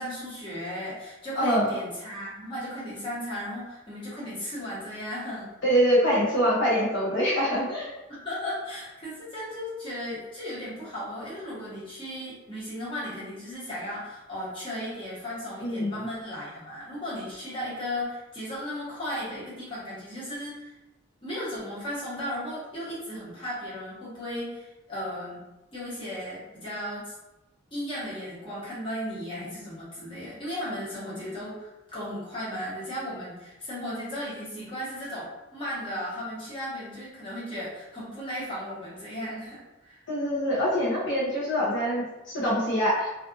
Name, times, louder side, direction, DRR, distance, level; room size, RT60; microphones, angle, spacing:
voice 1, 0.0-5.5 8.1-20.7 21.2-25.4 25.7-27.1 27.7-40.0, equal, 25° left, -9 dB, 1.1 m, -35 dB
voice 2, 1.4-1.7 5.6-7.9 15.6-15.9 40.1-43.1, equal, 65° left, -7 dB, 0.7 m, -24 dB
2.5 x 2.5 x 2.5 m, 0.99 s
head